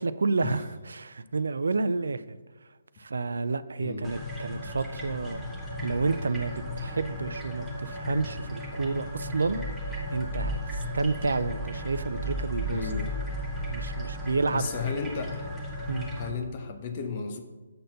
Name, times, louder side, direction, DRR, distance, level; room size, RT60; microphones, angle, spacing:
voice 1, 0.0-2.4 3.0-5.5 5.8-9.6 10.1-12.9 13.7-14.7 15.9-16.1, right 4 dB, 75° right, 14 dB, 0.4 m, -30 dB
voice 2, 3.8-4.1 12.7-13.1 14.5-15.4 16.1-17.4, left 5 dB, 40° left, 5 dB, 1.1 m, -34 dB
sound 1, 4.0-16.3, left 1 dB, ahead, 1.4 m, -35 dB
7.7 x 4.3 x 6.5 m, 1.3 s
figure-of-eight pair, 145°, 0 cm